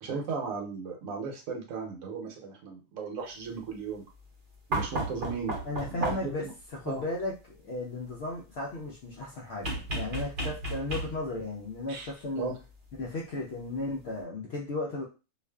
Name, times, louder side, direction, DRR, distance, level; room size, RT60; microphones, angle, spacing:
voice 1, 0.0-4.1 4.7-5.6 5.9-6.5 6.9-7.0 11.9-12.1 12.3-12.6, right 5 dB, 75° right, 1 dB, 1.1 m, -36 dB
sound 1, 4.7-6.5 9.6-11.4 12.9-13.0, right 2 dB, 45° right, 0.7 m, -33 dB
voice 2, 5.6-6.4 6.7-12.5 13.0-15.0, left 2 dB, 60° left, -3 dB, 0.7 m, -35 dB
2.5 x 2.4 x 2.2 m, 0.31 s
omnidirectional pair, 1.5 m